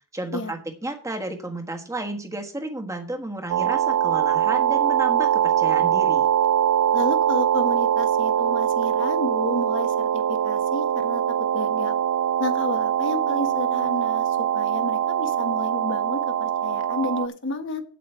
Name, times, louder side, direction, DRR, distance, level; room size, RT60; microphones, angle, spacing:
voice 1, 0.1-6.3, right 2 dB, 15° right, 4 dB, 1.4 m, -32 dB
sound 1, 3.5-17.3, right 10 dB, 75° right, 0.4 m, -22 dB
voice 2, 6.9-11.2 11.5-11.9 12.4-17.8, left 2 dB, 60° left, 6 dB, 1.5 m, -31 dB
8.6 x 7.8 x 5.6 m, 0.42 s
head